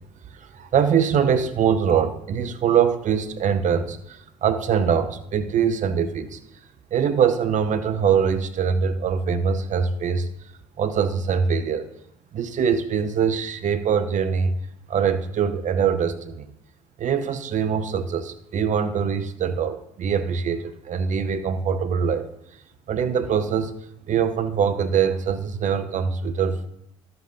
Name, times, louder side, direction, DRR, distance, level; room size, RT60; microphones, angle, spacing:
voice 1, 0.3-6.4 6.9-10.3 10.8-11.9 12.3-14.5 14.9-16.5 17.0-22.3 22.9-23.7 24.1-26.7, right 7 dB, 50° right, 10 dB, 0.8 m, -23 dB
13.0 x 7.8 x 2.7 m, 0.81 s
hypercardioid pair, 60°, 17 cm